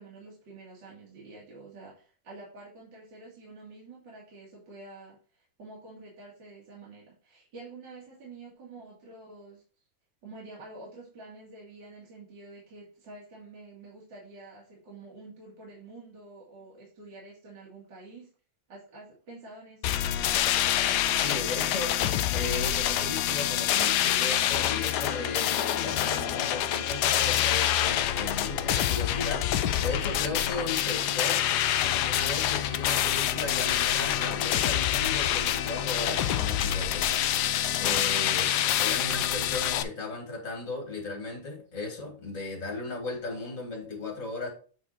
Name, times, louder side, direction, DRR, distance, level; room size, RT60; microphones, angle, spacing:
voice 1, 0.0-9.6 10.2-18.3 18.7-20.0, right 3 dB, 55° right, -5 dB, 2.8 m, -48 dB
sound 1, 19.8-39.8, left 11 dB, 90° left, 0.9 m, -26 dB
voice 2, 21.1-22.0 22.3-31.4 32.0-37.1 37.8-38.5 38.8-44.5, left 3 dB, 35° left, 1 dB, 2.8 m, -36 dB
8.3 x 4.2 x 4.3 m, 0.39 s
omnidirectional pair, 2.4 m